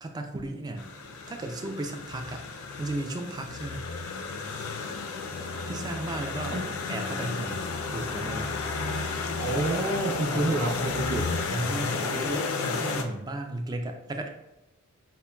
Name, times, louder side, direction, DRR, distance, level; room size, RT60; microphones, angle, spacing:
voice 1, 0.0-0.9 1.3-2.5 2.8-3.9 4.8-4.9 5.7-6.6 6.9-7.7 7.9-8.5 11.5-14.3, right 2 dB, 20° right, 5 dB, 0.3 m, -34 dB
sound 1, 0.8-13.0, left 4 dB, 75° left, 0.4 m, -32 dB
voice 2, 9.4-11.3, right 2 dB, 80° right, -4 dB, 1.0 m, -28 dB
5.8 x 2.1 x 2.2 m, 0.96 s
head